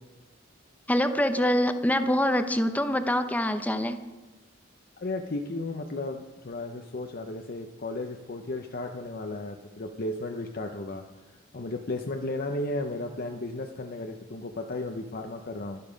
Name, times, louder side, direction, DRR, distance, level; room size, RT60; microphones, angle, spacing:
voice 1, 0.9-4.0, left 1 dB, 10° left, 9 dB, 0.7 m, -25 dB
voice 2, 5.0-11.0 11.5-15.8, left 2 dB, 50° left, 4 dB, 0.7 m, -34 dB
12.0 x 12.0 x 5.2 m, 1.1 s
head